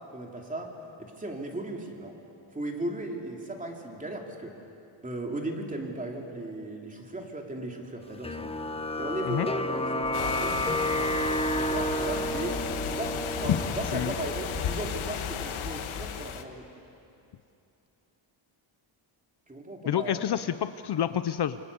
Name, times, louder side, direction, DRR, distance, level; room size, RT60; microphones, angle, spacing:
voice 1, 0.1-0.7 1.0-2.1 2.5-4.5 5.0-8.5 9.0-11.1 11.5-16.7 19.5-20.4, right 1 dB, 15° right, 1 dB, 3.1 m, -37 dB
sound 1, 8.2-15.1, left 1 dB, 10° left, 0.9 m, -31 dB
sound 2, 10.0-15.6, right 8 dB, 70° right, 2.4 m, -47 dB
sound 3, 10.1-16.4, left 8 dB, 85° left, 1.6 m, -33 dB
voice 2, 19.9-21.6, left 10 dB, 55° left, 12 dB, 0.7 m, -28 dB
27.5 x 25.0 x 8.4 m, 2.7 s
wide cardioid pair, 160°, 47 cm